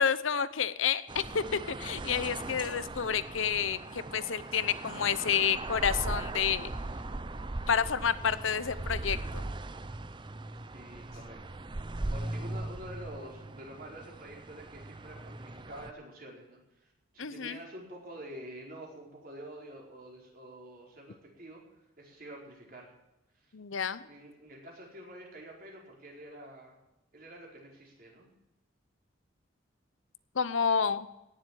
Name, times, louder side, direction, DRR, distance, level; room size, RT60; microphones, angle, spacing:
voice 1, 0.0-6.7 7.7-9.4 17.2-17.6 23.5-24.0 30.3-31.1, left 7 dB, 85° left, 14 dB, 0.8 m, -29 dB
sound 1, 1.1-15.9, right 2 dB, 25° right, 0.5 m, -39 dB
voice 2, 10.7-11.6 12.1-21.6 22.0-22.9 23.4-23.5 24.1-26.8 27.1-28.3, right 1 dB, 45° right, -2 dB, 4.7 m, -47 dB
17.5 x 7.6 x 8.7 m, 0.92 s
head